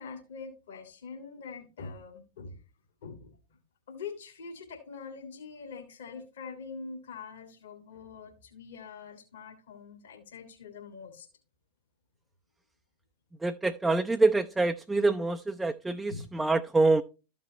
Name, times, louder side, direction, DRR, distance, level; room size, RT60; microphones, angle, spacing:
voice 1, 0.0-2.6 3.0-3.4 3.9-11.3 16.1-16.2, left 5 dB, 60° left, 1.9 m, -44 dB
voice 2, 13.4-17.0, right 3 dB, 10° right, 0.5 m, -26 dB
13.5 x 5.4 x 2.8 m
figure-of-eight pair, 90°, 0 cm